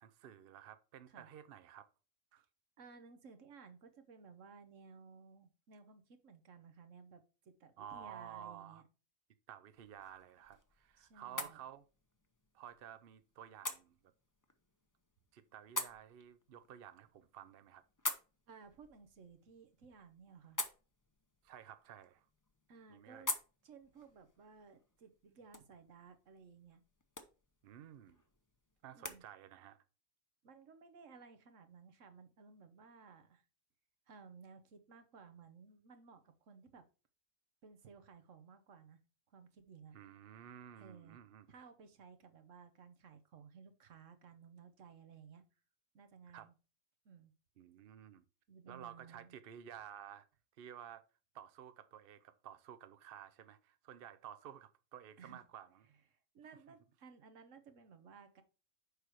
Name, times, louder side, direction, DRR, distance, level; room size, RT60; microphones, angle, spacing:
voice 1, 0.0-1.9 2.3-2.4 7.8-8.8 9.5-11.8 12.5-14.0 15.3-17.8 21.4-22.3 22.9-23.3 27.6-28.2 28.8-29.8 39.9-41.5 46.3-46.5 47.6-48.2 48.7-50.3 50.6-51.0 51.3-55.8, right 9 dB, 55° right, 0.7 m, -53 dB
voice 2, 2.8-8.8 11.0-11.6 18.5-20.6 22.7-23.4 23.6-26.8 28.9-29.2 30.4-33.4 34.1-36.9 37.6-39.0 39.3-40.0 40.8-41.2 41.5-45.4 45.9-46.5 47.0-47.3 48.5-49.3 55.2-55.4 56.1-58.4, right 5 dB, 70° right, 1.3 m, -58 dB
sound 1, 9.7-29.2, left 2 dB, 20° left, 0.6 m, -48 dB
6.6 x 4.9 x 4.5 m
omnidirectional pair, 1.3 m